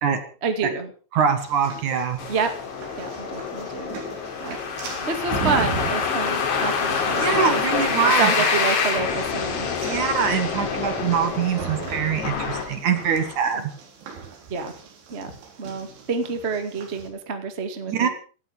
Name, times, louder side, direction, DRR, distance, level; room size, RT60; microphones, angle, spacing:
voice 1, 0.4-0.9 2.3-2.5 3.0-4.0 4.4-10.0 13.6-13.7 14.5-14.7 15.1-15.3 15.6-18.1, right 5 dB, 40° right, 7 dB, 0.9 m, -29 dB
voice 2, 1.1-2.2 7.2-8.5 9.8-13.6 17.9-18.1, right 7 dB, 55° right, 8 dB, 2.6 m, -23 dB
sound 1, 1.4-17.1, right 5 dB, 85° right, 6.0 m, -38 dB
sound 2, 2.2-13.4, left 5 dB, 80° left, 5.8 m, -26 dB
18.0 x 14.5 x 5.2 m, 0.40 s
omnidirectional pair, 5.3 m